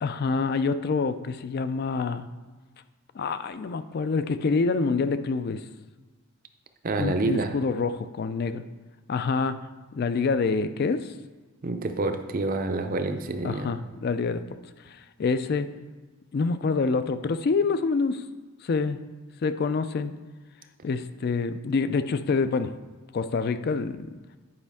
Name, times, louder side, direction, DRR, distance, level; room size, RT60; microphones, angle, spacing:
voice 1, 0.0-2.3 3.1-5.6 7.0-8.6 9.1-9.6 9.9-11.1 13.4-14.4 14.9-15.7 16.3-18.2 18.6-19.0 19.4-20.1 20.8-22.7 23.1-24.1, left 4 dB, 45° left, 11 dB, 0.3 m, -26 dB
voice 2, 6.8-7.5 11.6-13.7, right 3 dB, 40° right, 7 dB, 0.5 m, -28 dB
9.7 x 5.3 x 3.5 m, 1.3 s
head